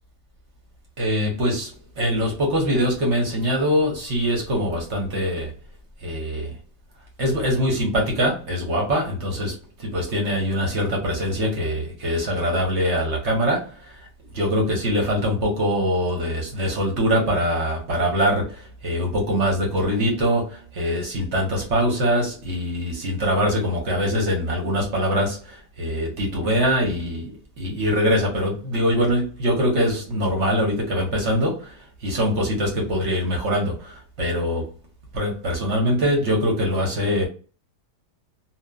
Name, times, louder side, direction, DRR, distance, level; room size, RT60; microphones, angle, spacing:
voice 1, 1.0-5.5 6.0-6.6 7.2-14.1 14.3-34.7 35.1-37.3, equal, 55° right, 0.9 m, -23 dB
2.8 x 2.2 x 2.2 m
omnidirectional pair, 1.7 m